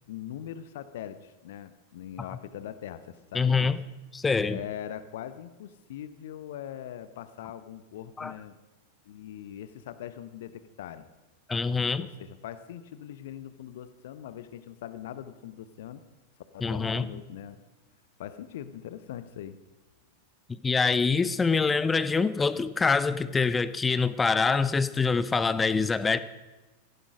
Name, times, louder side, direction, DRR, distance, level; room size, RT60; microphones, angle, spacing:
voice 1, 0.1-3.8 4.5-8.6 9.1-11.1 12.0-16.0 16.5-17.5 18.2-19.6, left 10 dB, 55° left, 0.9 m, -41 dB
voice 2, 3.3-3.8 4.1-4.6 8.2-8.3 11.5-12.1 16.6-17.1 20.6-26.2, left 4 dB, 15° left, 0.7 m, -25 dB
18.0 x 15.0 x 5.0 m
figure-of-eight pair, 90°, 0 cm